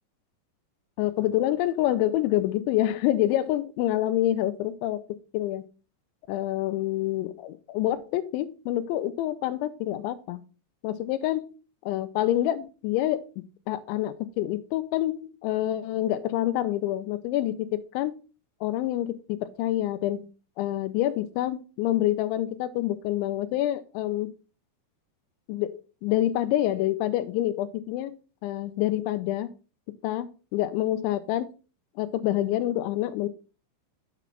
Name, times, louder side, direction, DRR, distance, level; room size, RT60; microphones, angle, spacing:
voice 1, 1.0-5.0 5.3-5.6 6.3-10.4 10.8-11.5 11.9-13.3 13.7-18.2 18.6-20.3 20.6-24.3 25.5-28.2 28.4-29.5 30.0-31.5 32.0-33.3, left 13 dB, 85° left, 11 dB, 3.0 m, -27 dB
7.0 x 6.0 x 4.5 m, 0.35 s
omnidirectional pair, 5.2 m